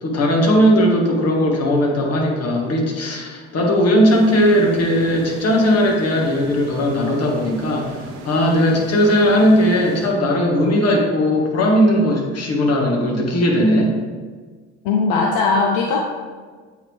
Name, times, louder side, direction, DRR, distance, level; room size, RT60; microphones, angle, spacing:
voice 1, 0.0-8.0 8.2-13.9, equal, 45° left, 0 dB, 1.5 m, -17 dB
sound 1, 4.1-10.8, right 4 dB, 80° right, 0.8 m, -36 dB
voice 2, 14.8-16.0, left 4 dB, 70° left, 0 dB, 0.7 m, -18 dB
8.2 x 3.7 x 3.2 m, 1.5 s
hypercardioid pair, 65°, 35 cm